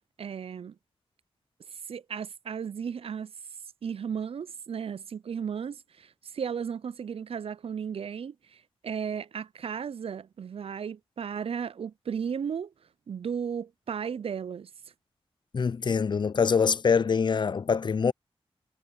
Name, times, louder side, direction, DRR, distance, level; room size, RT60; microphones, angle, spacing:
voice 1, 0.2-0.7 1.9-3.3 3.8-12.7 13.1-14.7, right 7 dB, 65° right, 0.4 m, -35 dB
voice 2, 15.5-18.1, left 6 dB, 45° left, 0.4 m, -24 dB
cardioid pair, 65°, 10 cm